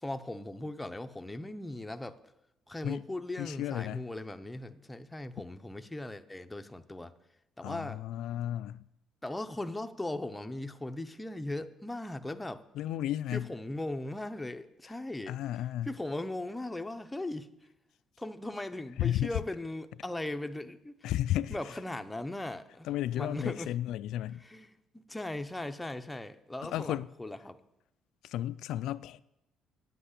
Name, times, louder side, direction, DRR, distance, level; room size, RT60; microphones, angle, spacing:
voice 1, 0.0-2.2 2.7-7.1 7.6-8.0 9.2-12.6 13.3-15.4 15.8-17.5 18.2-21.1 21.5-22.9 23.1-23.7 24.4-27.6, left 1 dB, 10° left, 0.6 m, -38 dB
voice 2, 3.4-4.0 7.6-8.8 12.8-13.5 15.3-15.9 19.0-19.3 21.0-21.5 22.8-24.4 26.7-27.1 28.2-29.2, left 12 dB, 75° left, 0.3 m, -33 dB
9.4 x 7.8 x 8.2 m
cardioid pair, 145°, 0 cm